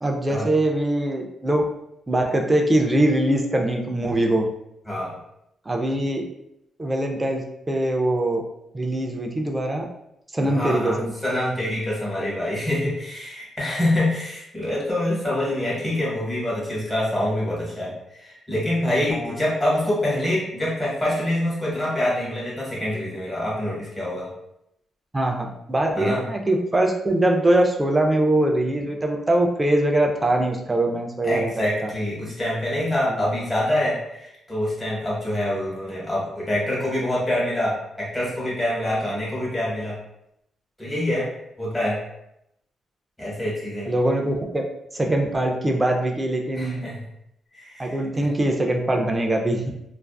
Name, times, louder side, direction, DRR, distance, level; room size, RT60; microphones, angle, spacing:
voice 1, 0.0-1.7 2.1-4.4 5.7-6.2 6.8-8.4 8.7-9.8 10.3-11.1 19.1-19.3 25.1-31.5 31.8-31.9 43.9-44.6 44.9-46.9 47.8-49.6, right 1 dB, 15° right, 1 dB, 0.3 m, -22 dB
voice 2, 10.4-24.3 26.0-26.2 31.2-40.0 40.8-41.3 41.6-42.0 43.2-43.9 46.5-47.0 47.5-48.3, left 1 dB, 5° left, -6 dB, 1.0 m, -26 dB
2.4 x 2.3 x 2.2 m, 0.81 s
cardioid pair, 135°, 0 cm